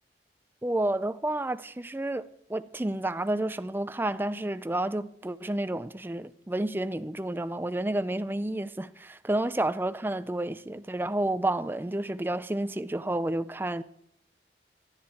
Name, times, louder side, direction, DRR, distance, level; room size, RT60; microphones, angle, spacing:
voice 1, 0.6-2.2 2.5-13.8, right 1 dB, 10° right, 0.4 m, -30 dB
17.5 x 11.5 x 4.4 m
head